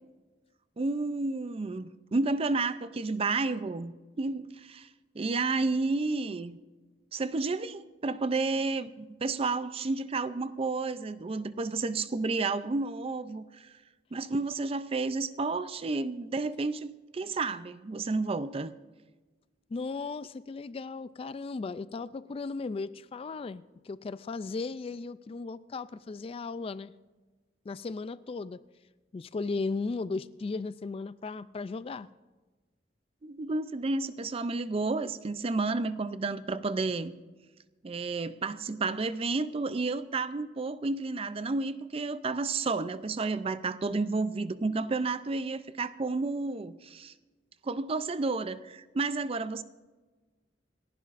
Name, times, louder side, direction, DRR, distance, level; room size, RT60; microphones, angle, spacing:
voice 1, 0.8-4.9 5.2-6.6 7.1-13.7 14.1-18.7 33.2-37.1 37.8-47.1 47.6-49.6, right 3 dB, 35° right, 14 dB, 0.4 m, -31 dB
voice 2, 19.7-26.9 27.7-28.6 29.1-32.1, left 4 dB, 30° left, 16 dB, 0.3 m, -36 dB
28.0 x 11.5 x 2.5 m, 1.3 s
head